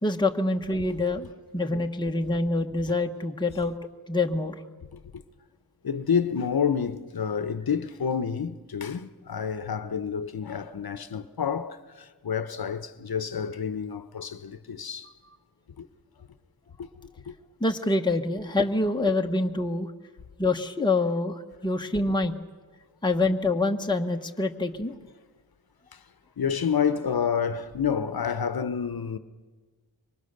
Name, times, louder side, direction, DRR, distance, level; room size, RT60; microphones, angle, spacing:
voice 1, 0.0-3.7 4.1-4.6 17.6-19.9 20.4-22.3 23.0-25.0, left 2 dB, 10° left, 1.1 m, -26 dB
voice 2, 4.9-5.2 5.8-15.1 15.8-15.9 16.8-16.9 17.3-17.4 25.9-26.0 26.4-29.2, left 7 dB, 70° left, 0.9 m, -29 dB
25.5 x 24.0 x 6.6 m
wide cardioid pair, 90°, 38 cm